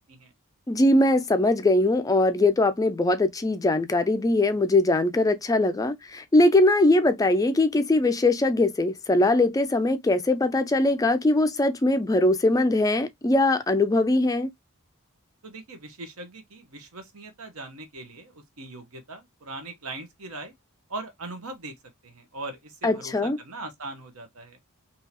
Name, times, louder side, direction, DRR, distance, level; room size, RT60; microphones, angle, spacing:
voice 1, 0.7-14.5 22.8-23.4, left 2 dB, 15° left, 0.3 m, -21 dB
voice 2, 15.4-20.5 20.9-21.7 22.0-24.6, right 2 dB, 75° right, 1.1 m, -40 dB
3.6 x 2.8 x 2.9 m
head